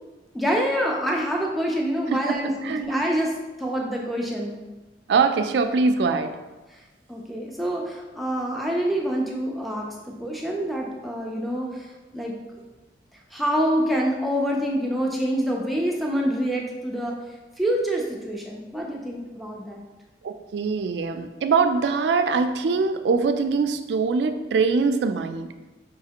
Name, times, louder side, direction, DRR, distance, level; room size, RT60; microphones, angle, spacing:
voice 1, 0.3-3.3 3.6-4.6 6.7-6.8 7.1-12.4 13.3-17.2 17.6-19.8, equal, ahead, -2 dB, 0.4 m, -26 dB
voice 2, 2.6-3.1 5.1-6.4 20.2-25.5, right 4 dB, 80° right, 8 dB, 0.3 m, -23 dB
5.4 x 3.2 x 2.8 m, 1.2 s
head